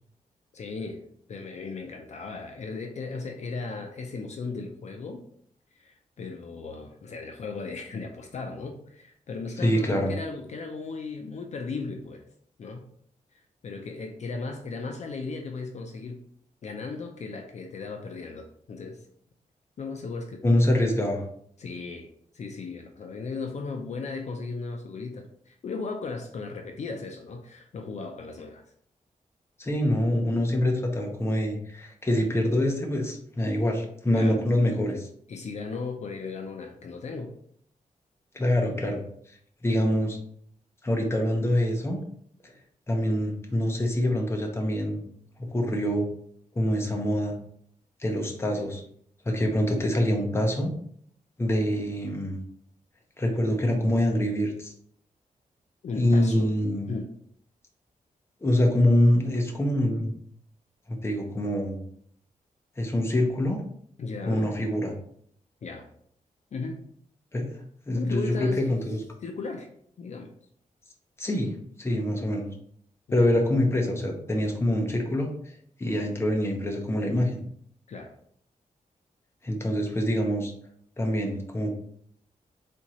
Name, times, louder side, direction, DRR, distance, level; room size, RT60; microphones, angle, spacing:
voice 1, 0.5-5.2 5.7-12.2 12.6-12.9 13.3-16.2 16.6-19.0 19.8-20.4 21.6-22.1 22.3-28.6 34.1-34.4 35.3-37.3 55.8-56.5 56.9-57.1 64.0-64.6 65.6-65.9 66.5-66.8 67.9-68.6 69.2-69.7 70.0-70.3 73.1-73.3 77.9-78.1, left 4 dB, 55° left, 3 dB, 0.5 m, -36 dB
voice 2, 9.6-10.1 20.4-21.2 29.6-35.1 38.3-39.0 39.6-40.2 40.8-42.0 42.4-42.5 42.9-45.0 45.5-46.1 46.5-47.4 48.0-48.8 49.3-50.7 51.4-52.4 53.2-54.7 56.0-56.9 58.4-60.1 60.9-61.8 62.8-63.6 64.2-64.9 67.3-67.5 67.9-69.0 71.2-71.5 71.8-72.5 73.1-75.3 75.8-77.4 79.4-80.5 81.0-81.7, left 1 dB, 15° left, 1 dB, 0.7 m, -25 dB
4.3 x 3.6 x 3.0 m, 0.64 s
wide cardioid pair, 180°, 14 cm